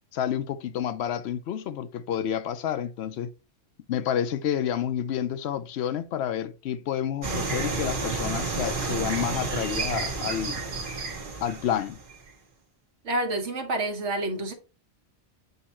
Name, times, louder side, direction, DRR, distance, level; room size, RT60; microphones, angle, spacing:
voice 1, 0.1-3.3 3.9-10.5 11.4-12.0, left 9 dB, 75° left, 0.8 m, -29 dB
sound 1, 7.2-12.3, right 4 dB, 50° right, 1.2 m, -31 dB
voice 2, 13.0-14.5, right 1 dB, 90° right, 1.5 m, -28 dB
8.0 x 2.8 x 4.2 m
omnidirectional pair, 1.1 m